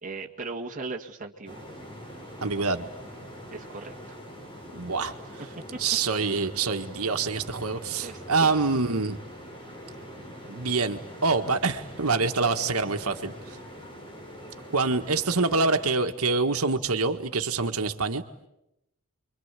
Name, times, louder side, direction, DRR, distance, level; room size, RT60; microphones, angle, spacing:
voice 1, 0.0-1.6 3.5-4.2 5.7-5.8 8.0-8.8, right 3 dB, 35° right, 1 dB, 1.9 m, -38 dB
sound 1, 1.5-15.9, equal, 25° left, 5.2 m, -43 dB
voice 2, 2.4-2.9 4.7-5.1 5.8-9.2 10.5-13.3 14.7-18.2, right 4 dB, 80° right, 7 dB, 1.7 m, -26 dB
29.5 x 24.0 x 8.3 m, 0.86 s
head